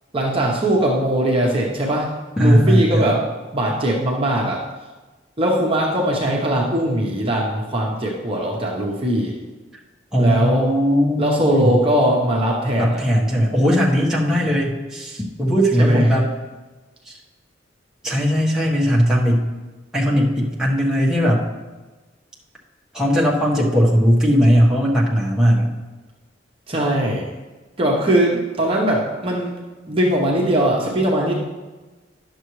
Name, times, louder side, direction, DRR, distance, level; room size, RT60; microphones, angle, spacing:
voice 1, 0.1-2.1 2.4-3.2 3.5-4.6 5.4-9.4 10.2-10.7 11.2-13.0 15.8-16.0 26.7-27.3 27.8-29.5 29.9-31.3, right 1 dB, 30° right, -2 dB, 1.0 m, -20 dB
voice 2, 2.4-3.1 10.1-11.8 12.8-16.3 17.1-17.2 18.0-19.5 19.9-21.4 22.9-25.7, equal, 5° right, -5 dB, 1.3 m, -18 dB
11.0 x 6.8 x 3.2 m, 1.2 s
head